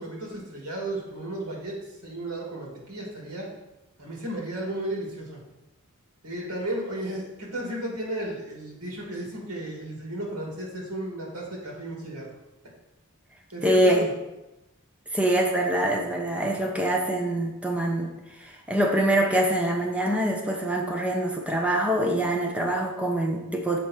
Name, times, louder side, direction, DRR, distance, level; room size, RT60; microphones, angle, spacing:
voice 1, 0.0-3.5 4.0-5.4 6.2-12.3 13.5-14.1, right 1 dB, 85° right, -2 dB, 2.7 m, -34 dB
voice 2, 13.6-14.1 15.1-18.1 18.4-23.8, right 1 dB, 5° right, 0 dB, 0.9 m, -24 dB
7.4 x 5.3 x 4.5 m, 0.97 s
head